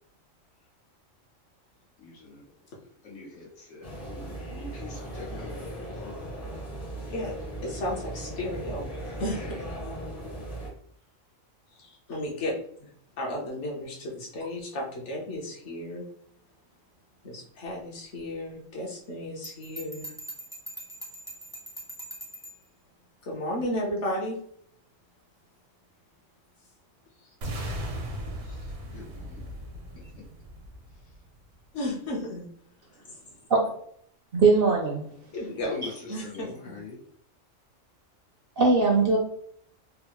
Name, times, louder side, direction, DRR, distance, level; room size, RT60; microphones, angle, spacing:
voice 1, 2.0-2.4 3.0-5.8 6.0-6.1 8.7-9.2 28.9-29.5 35.6-35.9 36.2-37.0, left 3 dB, 80° left, -4 dB, 1.5 m, -43 dB
sound 1, 3.8-10.7, right 1 dB, 35° left, 0.7 m, -38 dB
voice 2, 7.6-8.9 9.2-9.6 11.8-12.9 13.2-16.1 17.2-20.1 23.3-24.4 28.4-28.6 31.7-32.5 35.3-35.8 36.1-36.8, left 1 dB, 65° left, -3 dB, 1.2 m, -33 dB
Bell, 19.4-22.6, right 1 dB, 5° right, 0.3 m, -42 dB
sound 2, 27.4-31.4, equal, 85° right, 1.1 m, -37 dB
voice 3, 34.3-35.0 38.6-39.2, right 4 dB, 60° right, 1 dB, 0.6 m, -20 dB
3.6 x 2.0 x 2.9 m, 0.65 s
omnidirectional pair, 1.4 m